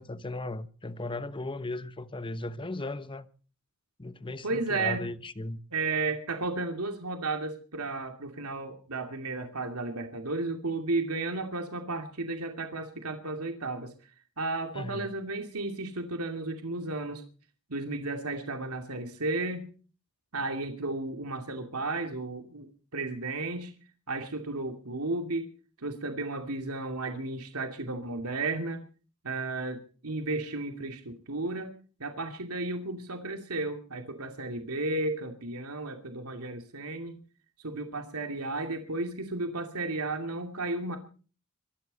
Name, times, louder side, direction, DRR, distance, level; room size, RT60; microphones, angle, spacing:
voice 1, 0.0-3.3 4.0-5.6 14.7-15.2, left 2 dB, 25° left, 1.0 m, -37 dB
voice 2, 4.4-5.1 5.7-13.9 14.4-17.2 17.7-19.7 20.3-23.7 24.1-25.5 25.8-28.8 29.2-31.7 32.0-37.2 37.6-41.0, right 2 dB, 85° right, 2.6 m, -33 dB
25.0 x 13.0 x 4.1 m
head